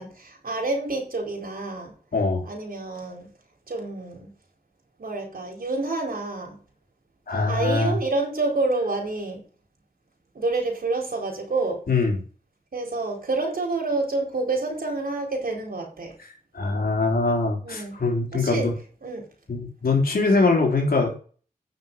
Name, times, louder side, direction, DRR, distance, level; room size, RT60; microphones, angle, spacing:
voice 1, 0.0-1.9 2.5-3.3 3.7-4.3 5.0-6.6 7.5-9.4 10.3-11.8 12.7-16.1 17.6-18.0 18.3-18.7 19.0-19.3, right 3 dB, 80° right, 1 dB, 4.4 m, -28 dB
voice 2, 2.1-2.5 7.3-8.0 11.9-12.2 16.5-18.7 19.5-21.1, left 3 dB, 85° left, 1 dB, 3.8 m, -22 dB
9.4 x 7.0 x 5.5 m, 0.40 s
wide cardioid pair, 80°, 15 cm